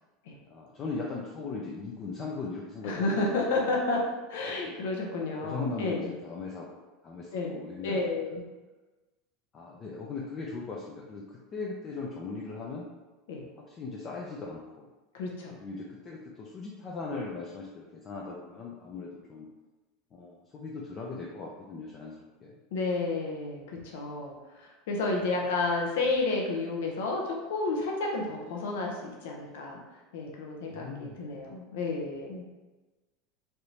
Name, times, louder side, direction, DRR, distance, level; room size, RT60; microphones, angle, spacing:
voice 1, 0.5-3.5 4.7-4.9 5.2-6.7 7.0-8.0 9.5-12.9 13.7-14.9 15.5-19.5 20.1-22.1 22.4-22.6 25.2-25.3 30.7-31.2, left 4 dB, 25° left, -3 dB, 0.4 m, -39 dB
voice 2, 2.8-4.0 4.3-6.1 7.3-7.5 7.8-8.4 13.3-13.5 15.1-15.5 22.7-29.8 30.1-32.4, left 3 dB, 85° left, 0 dB, 0.7 m, -31 dB
3.3 x 2.6 x 2.9 m, 1.2 s
supercardioid pair, 145°, 0 cm